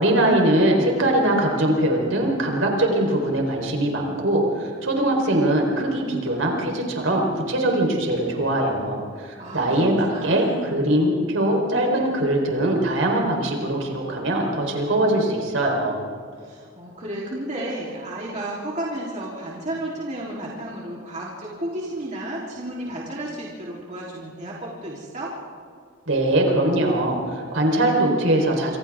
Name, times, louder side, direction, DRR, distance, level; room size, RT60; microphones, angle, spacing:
voice 1, 0.0-16.1 26.1-28.8, right 1 dB, 85° right, 1 dB, 4.4 m, -22 dB
voice 2, 9.4-10.8 16.4-25.3, right 1 dB, 40° right, -5 dB, 3.7 m, -32 dB
27.0 x 27.0 x 3.7 m, 2.2 s
head